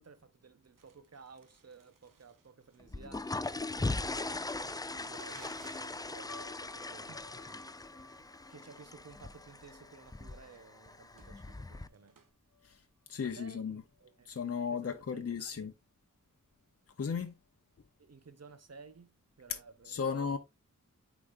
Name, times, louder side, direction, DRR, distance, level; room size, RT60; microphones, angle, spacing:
voice 1, 0.0-7.1 8.5-12.2 13.2-15.7 18.0-20.4, right 5 dB, 55° right, 0.9 m, -55 dB
Crumpling crinkling, 0.8-12.3, right 6 dB, 80° right, 1.0 m, -62 dB
sound 1, 2.8-11.9, left 2 dB, 15° left, 0.3 m, -40 dB
sound 2, 6.3-12.8 13.0-13.1 13.9-14.2 14.8-14.9 15.2-15.4, left 2 dB, 75° left, 1.1 m, -56 dB
voice 2, 13.1-13.8 14.3-15.7 17.0-17.3 19.5-19.6 19.8-20.4, left 6 dB, 50° left, 0.7 m, -35 dB
8.5 x 5.0 x 2.5 m
wide cardioid pair, 65°, 32 cm